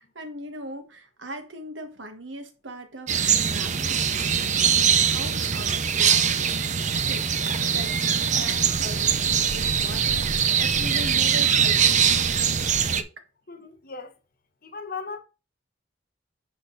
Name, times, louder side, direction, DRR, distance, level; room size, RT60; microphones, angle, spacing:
voice 1, 0.0-13.2, right 1 dB, 85° right, 1.6 m, -40 dB
sound 1, 3.1-13.0, right 7 dB, 40° right, 0.6 m, -22 dB
voice 2, 13.5-14.2 14.6-15.2, left 4 dB, 50° left, 1.3 m, -37 dB
11.0 x 4.0 x 4.0 m
head